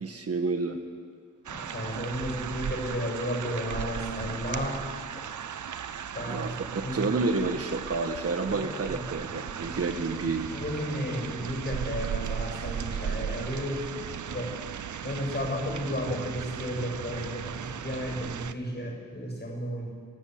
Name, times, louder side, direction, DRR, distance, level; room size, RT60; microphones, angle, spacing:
voice 1, 0.0-0.8 6.3-6.6 6.9-10.5, right 3 dB, 50° right, 6 dB, 1.4 m, -29 dB
voice 2, 1.5-4.8 5.1-5.2 6.1-6.5 6.8-7.2 10.5-13.9 14.3-14.6 15.0-19.9, equal, 35° left, 0 dB, 7.2 m, -33 dB
sound 1, 1.5-18.5, right 8 dB, 75° right, 0.8 m, -36 dB
30.0 x 13.0 x 8.0 m, 2.1 s
wide cardioid pair, 150°, 30 cm